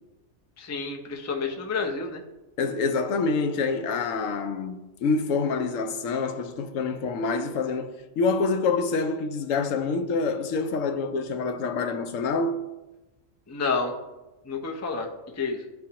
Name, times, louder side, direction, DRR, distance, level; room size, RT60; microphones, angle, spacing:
voice 1, 0.6-2.2 13.5-13.9 14.5-15.1 15.4-15.6, left 4 dB, 25° left, 0.3 m, -29 dB
voice 2, 2.6-12.6, left 4 dB, 90° left, 1.0 m, -26 dB
11.0 x 3.8 x 2.8 m
omnidirectional pair, 1.3 m